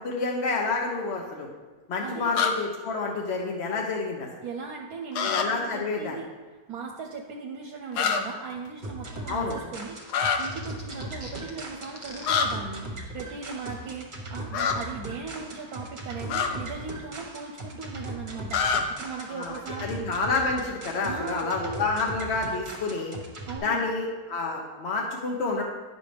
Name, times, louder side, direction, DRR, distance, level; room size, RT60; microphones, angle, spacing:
voice 1, 0.0-1.5 1.9-4.3 5.2-6.2 9.3-9.6 19.3-23.1 23.6-25.6, left 3 dB, 50° left, 0 dB, 1.0 m, -29 dB
voice 2, 2.0-2.4 4.4-6.3 6.7-10.0 10.4-20.1 21.1-21.5 23.5-23.8, right 4 dB, 70° right, 1 dB, 1.1 m, -38 dB
sound 1, 2.4-2.5 5.1-5.4 7.9-8.2 10.1-10.4 12.2-12.5 14.5-14.8 16.3-16.5 18.5-18.8, left 7 dB, 80° left, 1.2 m, -24 dB
sound 2, 8.8-23.6, right 1 dB, 35° right, 1.2 m, -39 dB
sound 3, 9.9-12.3, equal, 10° left, 0.8 m, -44 dB
9.6 x 6.2 x 3.4 m, 1.4 s
omnidirectional pair, 1.7 m